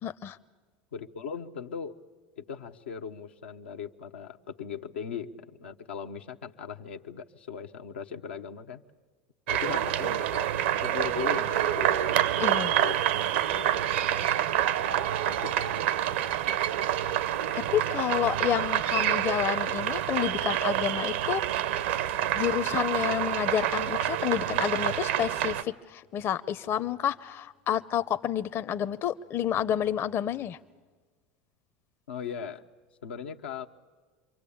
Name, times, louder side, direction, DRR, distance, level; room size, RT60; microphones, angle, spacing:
voice 1, 0.0-0.4 12.4-12.7 17.7-21.4 22.3-30.6, left 10 dB, 45° left, 12 dB, 0.7 m, -29 dB
voice 2, 0.9-2.0 2.4-8.8 9.5-12.0 12.5-13.0 13.5-13.8 14.9-15.9 32.1-32.6 33.0-33.7, left 7 dB, 90° left, 3 dB, 1.0 m, -39 dB
sound 1, 9.5-25.6, right 11 dB, 80° right, 0.9 m, -27 dB
27.5 x 23.5 x 8.6 m, 1.4 s
hypercardioid pair, 95°, 6 cm